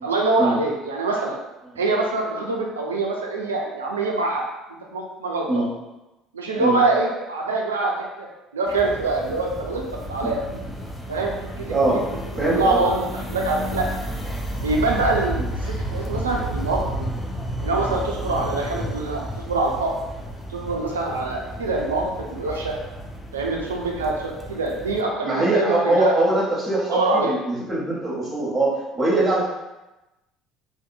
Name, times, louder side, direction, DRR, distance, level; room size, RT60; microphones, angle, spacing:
voice 1, 0.0-1.4 1.8-4.4 4.9-5.7 6.3-8.3 8.5-9.8 10.1-10.6 11.1-11.7 12.4-13.9 14.6-15.4 15.9-17.1 17.6-20.0 20.5-22.8 23.3-26.1 26.9-27.3, right 3 dB, 85° right, -1 dB, 0.3 m, -24 dB
sound 1, 8.7-25.0, equal, 15° left, 0.5 m, -32 dB
voice 2, 11.7-12.0 12.4-12.8 15.4-15.5 25.2-29.5, right 2 dB, 25° right, -6 dB, 0.9 m, -22 dB
2.6 x 2.1 x 2.5 m, 0.99 s
hypercardioid pair, 60°, 0 cm